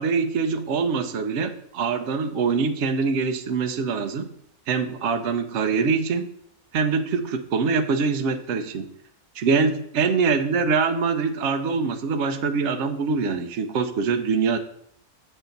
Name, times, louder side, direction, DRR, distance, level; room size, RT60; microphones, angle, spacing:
voice 1, 0.0-4.3 4.7-6.3 6.7-8.9 9.4-14.6, right 5 dB, 60° right, 9 dB, 0.8 m, -24 dB
6.9 x 6.7 x 3.9 m, 0.70 s
omnidirectional pair, 1.6 m